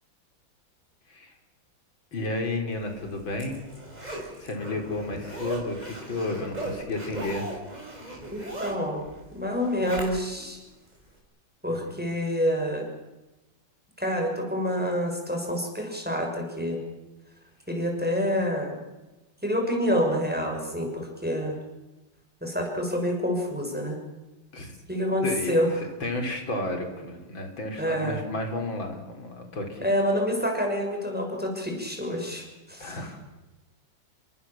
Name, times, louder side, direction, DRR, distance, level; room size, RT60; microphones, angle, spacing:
voice 1, 2.1-3.6 4.4-7.5 11.7-12.0 24.5-24.8 25.2-29.8 32.8-33.2, left 2 dB, 85° left, 4 dB, 4.8 m, -32 dB
Zipper (clothing), 2.9-10.5 10.9-11.0, right 1 dB, 20° right, 6.0 m, -38 dB
voice 2, 8.6-10.6 11.6-12.9 14.0-16.8 17.7-18.8 19.4-21.6 22.4-24.0 24.9-25.7 27.8-28.2 29.8-33.0, equal, 5° right, 2 dB, 6.2 m, -27 dB
28.5 x 23.5 x 7.4 m, 1.1 s
omnidirectional pair, 2.1 m